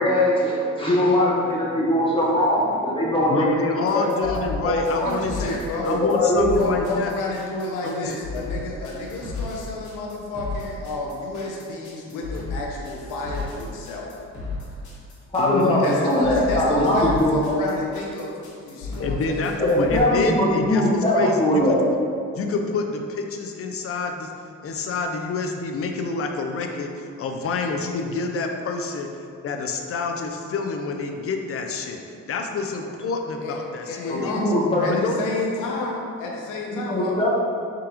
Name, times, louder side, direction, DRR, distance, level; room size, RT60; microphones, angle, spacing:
voice 1, 0.0-4.3 4.6-5.1 5.8-6.5 15.3-17.6 19.6-21.8 34.1-34.9 36.7-37.3, left 1 dB, 15° left, -6 dB, 1.2 m, -21 dB
voice 2, 3.3-5.6 5.8-7.1 7.8-8.1 15.4-15.9 19.0-21.8 22.4-24.3 24.6-29.1 29.4-32.0 32.3-34.5 34.8-35.2, left 4 dB, 50° left, 3 dB, 0.6 m, -27 dB
sound 1, 3.9-20.0, left 3 dB, 70° left, 1.3 m, -34 dB
voice 3, 5.0-6.0 6.6-14.1 15.8-19.5 33.4-34.4 34.8-37.3, left 2 dB, 85° left, -1 dB, 0.7 m, -31 dB
4.8 x 3.8 x 2.9 m, 2.5 s
cardioid pair, 90°, 30 cm